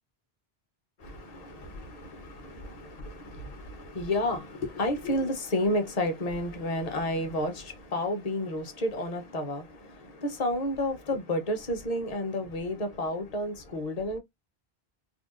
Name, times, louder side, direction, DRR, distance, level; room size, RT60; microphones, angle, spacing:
voice 1, 1.0-14.2, left 1 dB, 40° left, 0.8 m, -31 dB
3.5 x 2.2 x 2.4 m
omnidirectional pair, 1.1 m